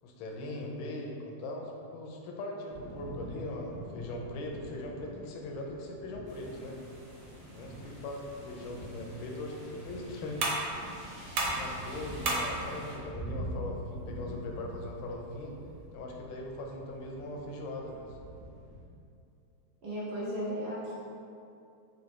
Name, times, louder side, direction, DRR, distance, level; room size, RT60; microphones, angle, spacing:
voice 1, 0.0-6.8 7.5-10.5 11.4-15.5 15.9-18.1, left 1 dB, 85° left, 0 dB, 1.4 m, -40 dB
Thunder / Rain, 2.7-18.8, equal, 50° left, 0.6 m, -45 dB
sound 1, 6.2-12.9, right 1 dB, 40° right, 1.5 m, -53 dB
sound 2, 9.3-15.9, right 2 dB, 80° right, 1.5 m, -37 dB
voice 2, 19.8-20.9, equal, 65° right, -9 dB, 0.6 m, -35 dB
3.9 x 2.8 x 3.1 m, 2.6 s
omnidirectional pair, 2.1 m